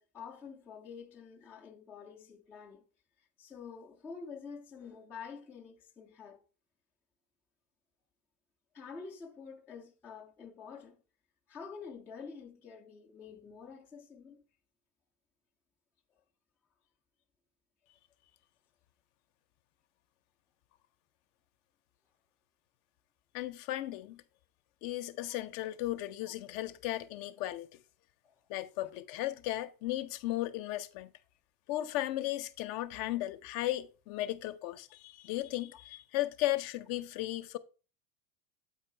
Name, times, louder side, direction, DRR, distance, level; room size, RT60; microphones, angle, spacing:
voice 1, 0.0-2.8 3.4-6.4 8.7-11.0 11.5-14.4 25.3-25.4 26.2-26.3 28.2-28.4 28.8-28.9 31.9-32.0, left 5 dB, 5° left, 0.3 m, -48 dB
voice 2, 23.3-24.2 24.8-27.7 28.5-31.1 31.7-37.6, left 15 dB, 45° left, 0.6 m, -35 dB
8.2 x 4.5 x 4.3 m
supercardioid pair, 135°, 48 cm